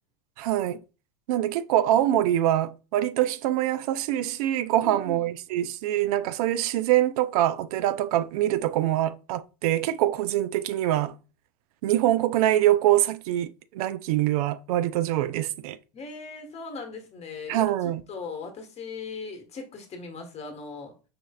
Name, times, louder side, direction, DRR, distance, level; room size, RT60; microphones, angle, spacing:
voice 1, 0.4-0.8 1.3-11.1 11.8-15.8 17.5-18.0, right 13 dB, 65° right, 0.4 m, -24 dB
voice 2, 4.8-5.3 15.9-20.9, left 4 dB, 30° left, 1.2 m, -39 dB
5.0 x 3.1 x 2.3 m
hypercardioid pair, 95°, 21 cm